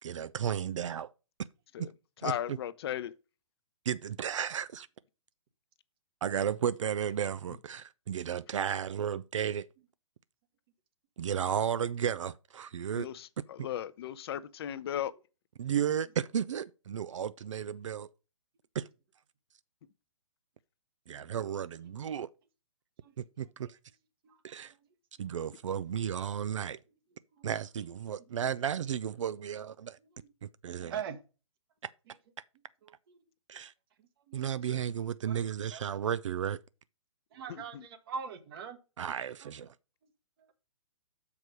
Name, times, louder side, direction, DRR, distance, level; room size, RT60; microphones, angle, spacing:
voice 1, 0.0-1.1 1.8-1.9 2.2-2.6 3.9-4.9 6.2-9.7 11.2-13.1 15.6-18.1 18.7-18.9 21.1-22.3 23.2-23.8 24.4-24.7 25.2-26.8 27.4-30.0 30.4-31.0 33.5-33.7 34.3-36.6 39.0-39.7, right 8 dB, 70° right, 0.4 m, -33 dB
voice 2, 2.2-3.1 12.9-15.1 34.7-34.8 37.5-37.8, left 10 dB, 50° left, 0.6 m, -36 dB
voice 3, 30.8-31.2 33.1-33.2 34.3-34.4 35.3-35.4 35.7-35.9 37.3-38.8 39.4-39.5, right 6 dB, 45° right, 1.3 m, -40 dB
6.7 x 4.8 x 5.2 m
hypercardioid pair, 135°, 16 cm